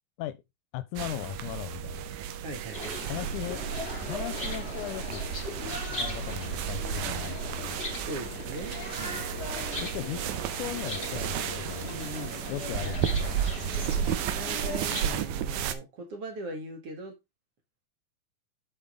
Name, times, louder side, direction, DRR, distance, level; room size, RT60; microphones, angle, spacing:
voice 1, 0.7-2.1 3.1-3.6 4.0-5.3 5.9-7.8 9.8-10.2 10.6-11.9 12.5-14.0, left 14 dB, 80° left, 2.0 m, -38 dB
sound 1, 1.0-15.7, right 9 dB, 75° right, 2.0 m, -33 dB
voice 2, 2.4-3.0 8.0-9.2 11.8-12.5 12.8-13.0 14.2-17.2, right 1 dB, 50° right, 2.5 m, -40 dB
sound 2, 2.7-15.1, left 3 dB, 20° left, 2.8 m, -39 dB
sound 3, 7.6-10.9, left 6 dB, 35° left, 1.1 m, -50 dB
8.0 x 5.9 x 3.6 m
omnidirectional pair, 3.7 m